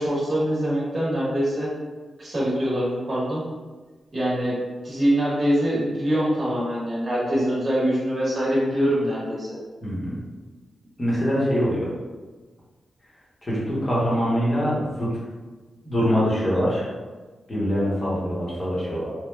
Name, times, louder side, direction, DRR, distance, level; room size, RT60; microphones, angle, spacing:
voice 1, 0.0-1.7 2.2-3.4 4.1-4.6 4.8-9.6, equal, 40° right, -6 dB, 1.0 m, -24 dB
voice 2, 9.8-10.2 11.0-11.9 13.4-15.1 15.8-16.9 17.5-19.1, equal, 30° left, -7 dB, 0.9 m, -24 dB
3.1 x 2.1 x 2.2 m, 1.3 s
cardioid pair, 95°, 0 cm